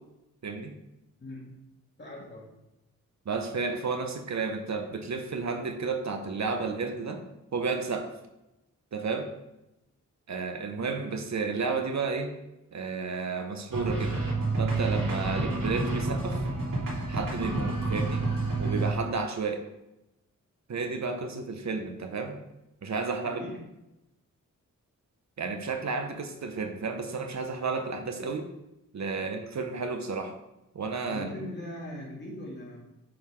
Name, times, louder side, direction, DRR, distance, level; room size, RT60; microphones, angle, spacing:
voice 1, 0.4-0.7 3.3-7.3 7.5-8.1 8.9-9.3 10.3-12.3 12.7-14.1 14.6-16.5 17.1-18.2 18.6-19.6 20.7-22.4 22.8-23.4 25.4-28.5 28.9-30.3 30.7-31.3, right 4 dB, 55° right, 6 dB, 0.8 m, -32 dB
voice 2, 1.2-1.5 2.0-2.5 23.2-23.6 31.1-32.8, left 1 dB, 35° left, -3 dB, 1.9 m, -40 dB
sound 1, 13.7-18.9, right 2 dB, 80° right, 2.2 m, -29 dB
8.7 x 3.9 x 4.9 m, 0.92 s
wide cardioid pair, 180°, 33 cm